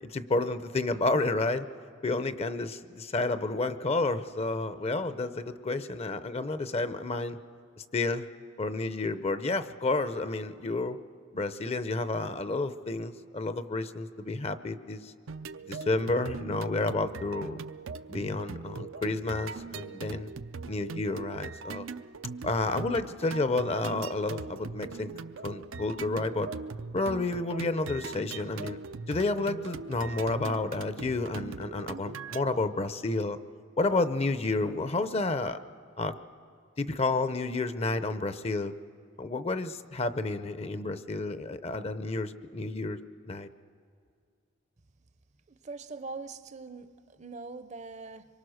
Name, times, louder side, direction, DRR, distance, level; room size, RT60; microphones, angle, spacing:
voice 1, 0.0-1.7 2.0-7.4 7.9-8.3 8.6-11.0 11.3-15.1 15.7-17.6 18.1-20.3 20.7-21.9 22.4-25.1 25.4-26.5 26.9-28.8 29.1-33.4 33.8-35.6 36.0-36.1 36.8-38.7 39.2-43.0 43.2-43.5, left 2 dB, 30° left, 12 dB, 0.6 m, -30 dB
sound 1, 15.3-32.4, right 4 dB, 85° right, 0.6 m, -40 dB
voice 2, 45.5-46.9 47.2-48.3, right 3 dB, 35° right, 12 dB, 0.6 m, -42 dB
25.5 x 23.5 x 6.4 m, 2.3 s
head